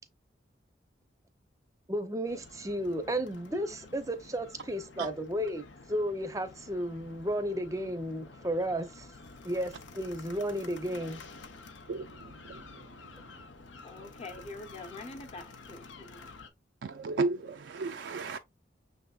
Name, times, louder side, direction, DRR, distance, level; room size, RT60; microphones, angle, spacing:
voice 1, 1.9-9.1 9.4-11.2, equal, 15° right, 0.6 m, -33 dB
sound 1, 2.3-16.5, left 3 dB, 85° left, 0.8 m, -50 dB
voice 2, 11.9-13.3 16.8-18.4, right 3 dB, 70° right, 0.4 m, -35 dB
voice 3, 13.8-16.3 18.2-18.4, left 2 dB, 35° left, 0.8 m, -45 dB
6.5 x 3.4 x 2.3 m
head